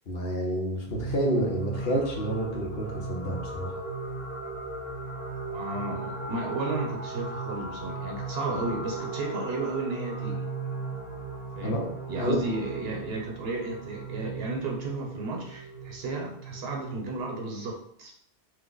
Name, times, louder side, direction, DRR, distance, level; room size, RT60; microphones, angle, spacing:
voice 1, 0.1-3.8 11.6-11.9 12.2-12.4, equal, 70° left, 0 dB, 1.0 m, -29 dB
sound 1, 0.9-17.2, right 3 dB, 10° left, 0.8 m, -37 dB
voice 2, 5.5-10.5 11.6-18.1, right 3 dB, 75° right, 0 dB, 1.0 m, -33 dB
3.1 x 2.1 x 3.7 m, 0.68 s
omnidirectional pair, 1.1 m